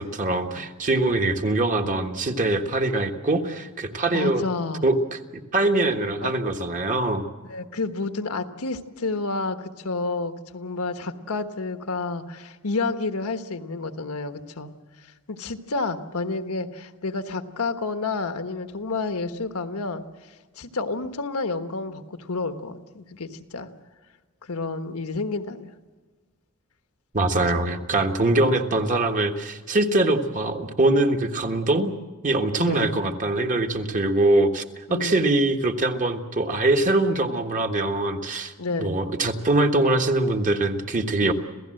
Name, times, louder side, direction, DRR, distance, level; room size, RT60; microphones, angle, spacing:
voice 1, 0.0-4.4 4.8-5.2 5.5-7.2 27.1-31.9 32.2-34.6 34.9-38.5 38.8-41.3, right 2 dB, 35° right, 5 dB, 1.5 m, -23 dB
voice 2, 4.1-4.9 6.2-6.3 7.5-14.7 15.3-20.0 20.6-23.7 24.5-25.7 27.3-27.7 28.4-28.6 32.6-32.9 34.9-35.2 38.6-38.9, left 3 dB, 80° left, 8 dB, 1.3 m, -30 dB
27.0 x 16.5 x 7.8 m, 1.4 s
head